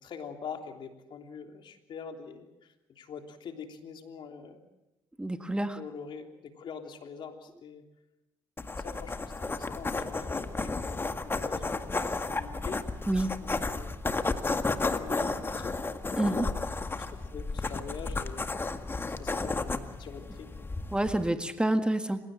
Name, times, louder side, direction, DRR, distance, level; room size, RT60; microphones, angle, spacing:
voice 1, 0.0-4.7 5.7-7.8 8.8-12.8 13.4-14.0 14.3-15.9 16.3-18.5 19.2-20.8, left 6 dB, 60° left, 4 dB, 3.3 m, -45 dB
voice 2, 5.2-5.8 13.1-13.3 16.2-16.5 20.9-22.2, right 1 dB, 10° right, 8 dB, 1.8 m, -28 dB
sound 1, 8.6-21.3, left 3 dB, 25° left, 1.9 m, -33 dB
27.5 x 16.5 x 7.6 m, 0.96 s
supercardioid pair, 70°, 9 cm